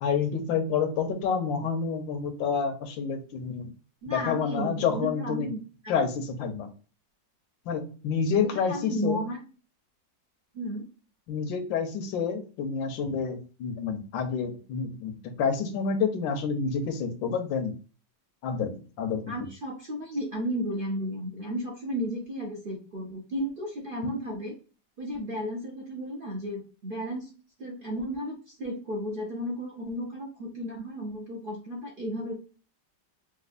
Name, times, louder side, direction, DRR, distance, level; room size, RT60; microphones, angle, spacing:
voice 1, 0.0-3.7 4.1-5.5 5.9-6.7 7.7-9.2 11.3-17.7 18.4-19.5, left 6 dB, 85° left, 6 dB, 1.4 m, -29 dB
voice 2, 4.0-5.9 8.7-9.4 10.5-10.9 19.3-24.6 25.0-27.3 27.6-32.3, equal, 65° right, -4 dB, 0.5 m, -33 dB
4.2 x 2.3 x 2.4 m, 0.36 s
omnidirectional pair, 2.0 m